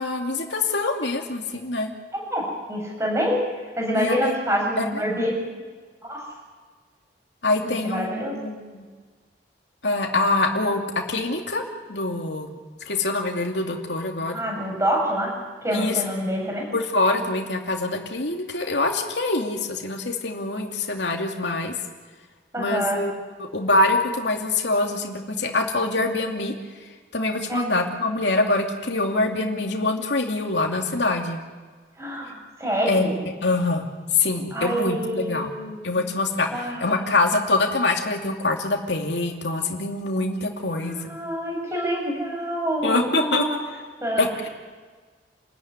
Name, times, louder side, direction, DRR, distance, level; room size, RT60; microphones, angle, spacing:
voice 1, 0.0-1.9 4.0-4.3 4.8-4.9 7.4-8.8 9.8-10.8 11.1-11.6 11.9-12.5 12.9-14.4 15.7-16.0 16.7-21.7 22.6-23.1 23.4-26.5 27.1-31.4 32.9-33.1 33.4-33.8 34.1-35.5 35.8-36.5 36.8-41.0 42.8-43.5 44.2-44.5, left 2 dB, 75° left, 1 dB, 2.7 m, -24 dB
voice 2, 2.1-3.4 3.8-5.4 6.0-6.2 7.6-8.3 14.3-15.3 15.6-16.7 22.5-23.0 27.5-27.7 32.0-33.2 34.5-36.0 36.5-37.1 40.8-43.6 44.0-44.3, equal, 15° right, -1 dB, 7.5 m, -27 dB
28.5 x 14.5 x 9.7 m, 1.5 s
head